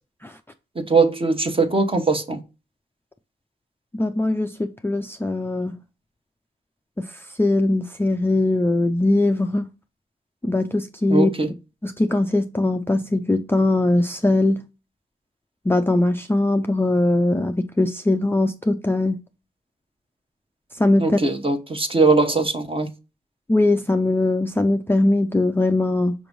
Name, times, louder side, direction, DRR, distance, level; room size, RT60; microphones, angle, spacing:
voice 1, 0.7-2.4 11.1-11.5 21.0-22.9, right 3 dB, 25° right, 1.1 m, -20 dB
voice 2, 3.9-5.7 7.0-9.7 10.4-11.3 11.8-14.6 15.6-19.2 20.8-21.2 23.5-26.1, left 2 dB, 10° left, 0.5 m, -21 dB
6.1 x 3.0 x 5.3 m
cardioid pair, 85°, 21 cm